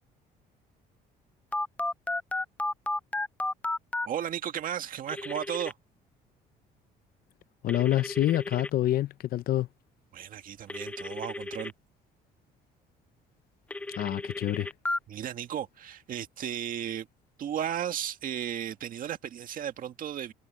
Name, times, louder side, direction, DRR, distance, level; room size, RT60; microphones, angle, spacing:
Telephone, 1.5-4.1 5.1-5.7 7.7-8.7 10.7-11.7 13.7-15.0, left 2 dB, 10° left, 0.4 m, -33 dB
voice 1, 4.0-5.7 10.1-11.7 15.1-17.1 17.4-20.3, right 10 dB, 55° right, 1.8 m, -34 dB
voice 2, 7.6-9.7 13.9-14.7, left 13 dB, 60° left, 0.8 m, -27 dB
cardioid pair, 110°, 17 cm